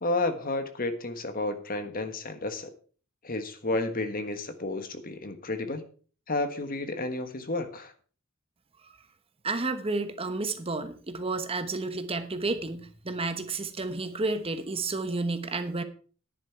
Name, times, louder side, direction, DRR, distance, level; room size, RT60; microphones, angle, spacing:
voice 1, 0.0-2.7 3.2-5.8 6.3-7.9, left 2 dB, 45° left, 8 dB, 1.5 m, -31 dB
voice 2, 9.4-15.8, right 3 dB, 25° right, 9 dB, 1.1 m, -31 dB
10.5 x 10.5 x 4.6 m, 0.40 s
head